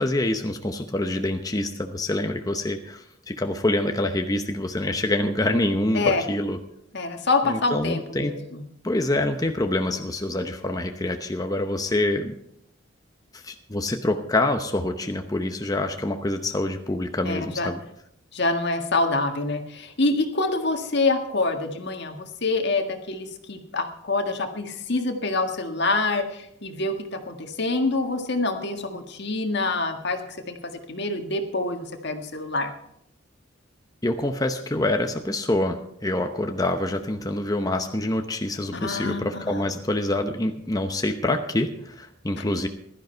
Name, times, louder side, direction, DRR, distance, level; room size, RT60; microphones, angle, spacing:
voice 1, 0.0-6.6 7.4-8.4 8.8-12.3 13.3-17.8 34.0-42.7, left 1 dB, 20° left, 5 dB, 0.8 m, -26 dB
voice 2, 5.9-6.3 6.9-8.6 17.2-17.7 18.3-32.7 38.7-39.7, left 3 dB, 60° left, 5 dB, 1.7 m, -26 dB
16.0 x 12.0 x 4.5 m, 0.75 s
head